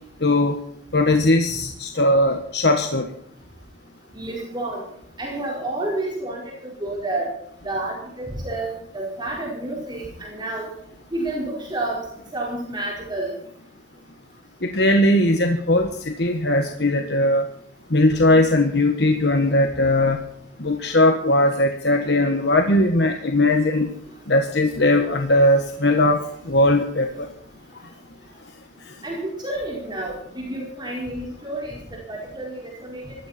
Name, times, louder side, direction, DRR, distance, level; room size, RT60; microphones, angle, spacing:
voice 1, 0.2-0.6 0.9-3.1 14.6-17.5 17.9-20.2 20.6-23.9 24.3-27.3, left 1 dB, 65° left, 5 dB, 1.5 m, -19 dB
voice 2, 4.1-4.8 5.2-7.3 7.6-10.7 11.1-12.0 12.3-13.3 29.0-33.1, right 2 dB, 25° right, -2 dB, 4.7 m, -30 dB
20.0 x 14.5 x 4.4 m, 0.68 s
head